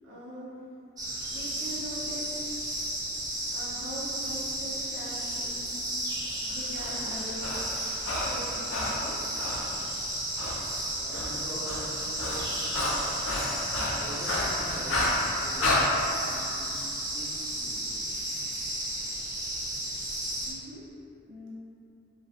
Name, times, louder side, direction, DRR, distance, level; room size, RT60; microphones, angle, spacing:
voice 1, 0.0-0.6 1.3-2.4 3.5-6.1 6.5-7.6 8.2-9.2 20.4-20.9 21.3-21.5, equal, 70° right, -8 dB, 0.6 m, -42 dB
sound 1, 1.0-20.5, right 1 dB, 20° right, 0.3 m, -33 dB
Breathing, 6.5-9.7 10.4-10.6 10.9-15.8, left 2 dB, 90° left, 0.4 m, -31 dB
voice 2, 10.9-12.5 13.9-18.2, equal, 30° left, -13 dB, 1.0 m, -43 dB
2.4 x 2.3 x 2.3 m, 2.7 s
head